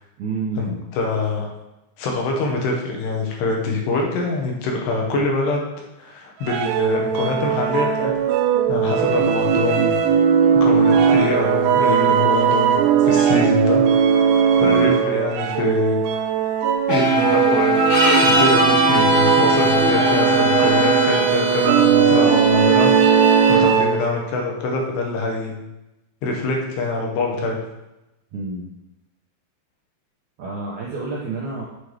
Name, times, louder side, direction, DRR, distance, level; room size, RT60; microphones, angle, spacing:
voice 1, 0.2-0.8 14.6-14.9 28.3-28.7 30.4-31.7, right 3 dB, 75° right, -4 dB, 1.8 m, -29 dB
voice 2, 0.9-1.5 2.0-5.7 6.0-8.3 8.7-10.0 10.5-13.8 14.6-16.0 16.9-18.0 18.2-22.9 23.5-25.5 26.2-27.6, left 3 dB, 80° left, 0 dB, 3.4 m, -24 dB
sound 1, 6.4-24.1, right 7 dB, 90° right, 2.7 m, -18 dB
sound 2, 16.9-21.0, equal, 55° left, 0.5 m, -21 dB
sound 3, 17.9-23.6, left 1 dB, 40° left, 2.3 m, -24 dB
8.0 x 4.5 x 5.0 m, 0.95 s
omnidirectional pair, 4.7 m